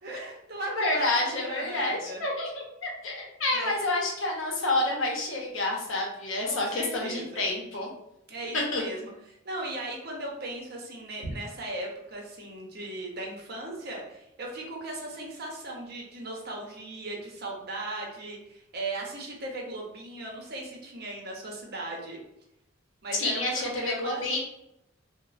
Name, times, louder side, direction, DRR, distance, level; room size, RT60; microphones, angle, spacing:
voice 1, 0.0-2.2 3.5-3.7 6.4-7.5 8.3-9.1 9.4-22.2 23.0-24.3, right 2 dB, 50° right, -1 dB, 0.6 m, -37 dB
voice 2, 0.7-7.9 8.5-8.8 11.2-11.3 23.2-24.4, left 2 dB, 70° left, -1 dB, 0.7 m, -29 dB
3.0 x 2.0 x 2.4 m, 0.83 s
head